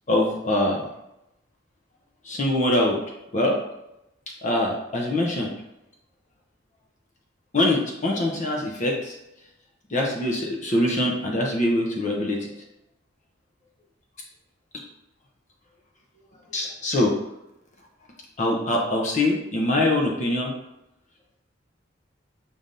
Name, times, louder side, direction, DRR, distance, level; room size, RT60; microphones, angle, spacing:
voice 1, 0.1-0.8 2.3-3.0 3.3-3.6 4.4-5.5 7.5-9.2 9.9-12.5 16.5-17.1 18.4-20.5, left 1 dB, 35° left, -1 dB, 0.6 m, -23 dB
5.3 x 3.3 x 2.6 m, 0.88 s
head